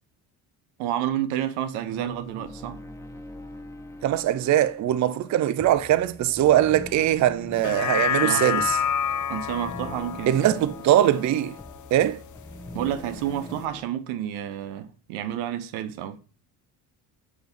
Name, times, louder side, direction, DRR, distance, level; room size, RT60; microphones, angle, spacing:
voice 1, 0.8-2.8 8.2-8.7 9.3-10.4 12.7-16.2, right 11 dB, 85° right, 0.8 m, -30 dB
sound 1, 1.7-13.8, left 1 dB, 5° left, 1.1 m, -43 dB
voice 2, 4.0-8.8 10.3-11.6 11.9-12.2, right 12 dB, 40° right, 0.4 m, -21 dB
sound 2, 7.5-12.1 12.5-12.6, left 8 dB, 40° left, 0.5 m, -28 dB
6.0 x 3.1 x 5.1 m
supercardioid pair, 70°, 47 cm